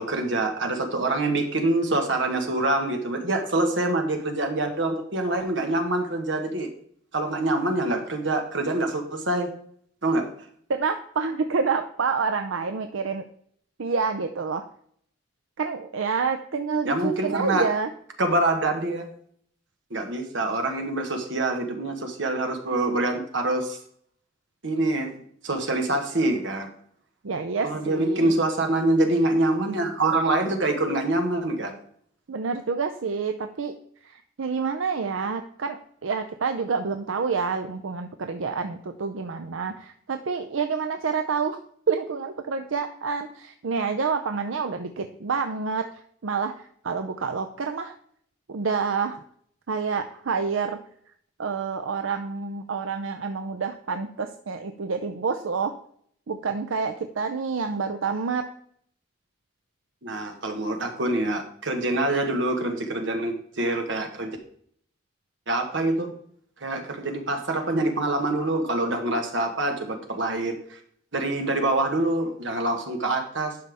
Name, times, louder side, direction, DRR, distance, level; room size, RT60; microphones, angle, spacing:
voice 1, 0.0-6.7 7.1-9.5 10.0-10.3 16.8-17.7 18.2-19.1 19.9-23.8 24.6-26.7 27.6-31.7 60.0-64.4 65.5-66.1 66.6-70.8 71.1-73.6, right 2 dB, 70° right, 4 dB, 1.4 m, -25 dB
voice 2, 10.7-13.2 13.8-14.6 15.6-17.9 27.2-28.3 32.3-33.7 34.0-41.6 41.9-45.9 46.2-48.0 48.5-49.2 49.7-50.8 51.4-55.7 56.3-58.5, right 5 dB, 90° right, 7 dB, 0.6 m, -28 dB
11.5 x 5.5 x 3.5 m, 0.63 s
head